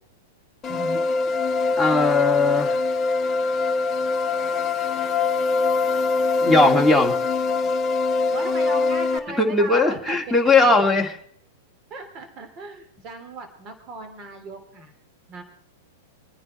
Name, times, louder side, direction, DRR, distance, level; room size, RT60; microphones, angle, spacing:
sound 1, 0.6-9.2, left 4 dB, 30° left, 1.2 m, -23 dB
voice 1, 0.7-1.0 8.3-10.3 11.9-14.9 15.3-15.4, right 3 dB, 35° right, 7 dB, 3.0 m, -37 dB
voice 2, 1.8-2.8 6.4-7.1 9.4-11.1, left 3 dB, ahead, 6 dB, 2.3 m, -18 dB
26.5 x 9.6 x 4.4 m, 0.69 s
hypercardioid pair, 120°, 0 cm